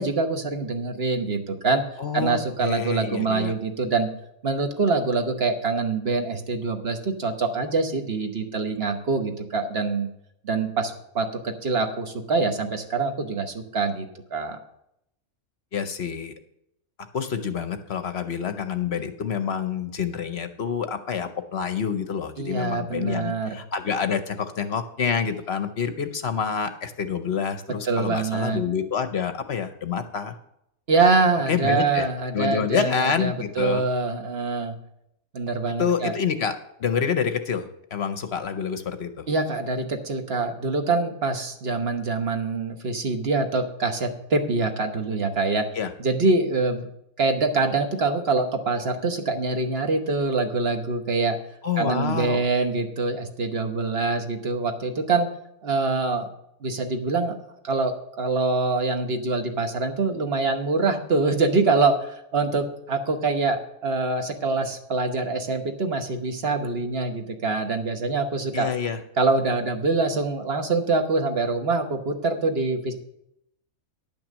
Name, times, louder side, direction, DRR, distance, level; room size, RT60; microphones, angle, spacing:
voice 1, 0.0-1.8 2.1-4.1 4.4-10.1 10.4-14.6 22.4-23.6 27.8-28.6 30.9-34.7 35.3-36.1 39.3-45.7 46.0-46.9 47.2-51.4 51.8-55.3 55.6-56.3 56.6-57.4 57.6-57.9 58.2-68.7 69.2-72.9, right 3 dB, 45° right, 5 dB, 1.3 m, -25 dB
voice 2, 2.0-3.5 15.7-16.3 17.1-30.3 31.5-33.8 35.8-39.3 45.7-45.9 51.6-52.5 68.5-69.0, left 7 dB, 55° left, 10 dB, 0.9 m, -27 dB
11.0 x 6.0 x 7.3 m, 0.78 s
omnidirectional pair, 1.5 m